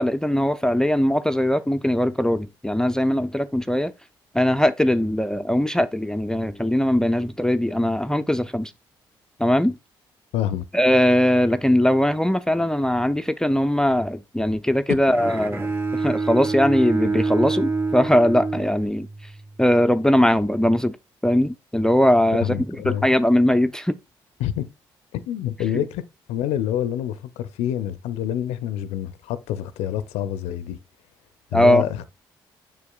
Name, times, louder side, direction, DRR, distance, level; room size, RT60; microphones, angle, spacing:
voice 1, 0.0-3.9 4.3-8.7 9.4-9.8 10.7-15.7 15.9-19.1 19.6-21.0 21.2-22.5 22.8-24.0 31.5-31.8, left 1 dB, 5° left, 0.4 m, -20 dB
voice 2, 10.3-10.6 22.4-23.1 24.4-24.7 25.1-26.0 26.3-30.8 31.5-32.0, left 11 dB, 75° left, 0.5 m, -27 dB
Bowed string instrument, 15.1-19.3, right 3 dB, 20° right, 1.2 m, -26 dB
7.0 x 6.2 x 2.3 m
hypercardioid pair, 45°, 11 cm